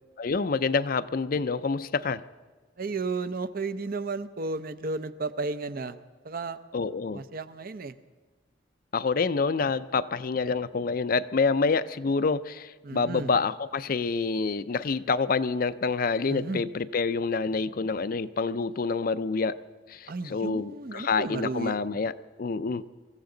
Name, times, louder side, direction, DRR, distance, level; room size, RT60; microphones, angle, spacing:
voice 1, 0.2-2.2 6.7-7.2 8.9-19.6 19.9-22.1 22.4-22.8, left 4 dB, 50° left, 14 dB, 0.5 m, -27 dB
voice 2, 2.8-6.0 6.2-6.6 7.1-8.0 12.8-13.3 16.3-16.6 20.1-21.8, right 3 dB, 50° right, 12 dB, 0.6 m, -33 dB
23.5 x 15.0 x 3.9 m, 1.4 s
head